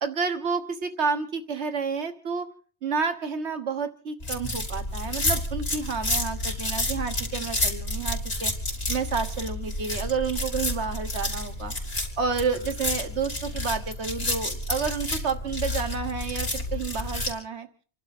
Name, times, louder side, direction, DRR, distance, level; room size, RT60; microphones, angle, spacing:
voice 1, 0.0-2.5 2.8-8.5 8.9-11.7 12.2-17.7, right 5 dB, 80° right, 7 dB, 1.6 m, -30 dB
sound 1, 4.2-17.3, left 1 dB, 60° left, 4.2 m, -30 dB
29.0 x 12.0 x 4.2 m, 0.43 s
omnidirectional pair, 1.1 m